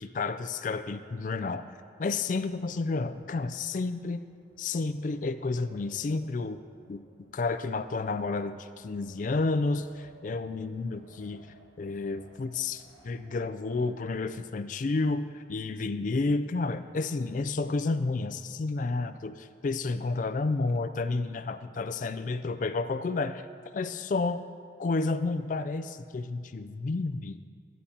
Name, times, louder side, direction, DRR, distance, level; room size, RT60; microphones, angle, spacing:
voice 1, 0.0-1.6 2.0-4.2 4.6-6.6 6.9-7.0 7.3-11.4 11.8-23.5 23.7-24.4 24.8-27.5, left 3 dB, 40° left, 10 dB, 0.3 m, -31 dB
Wind, 2.2-14.8, right 1 dB, 80° right, 1.7 m, -59 dB
13.0 x 11.0 x 2.8 m, 2.2 s
head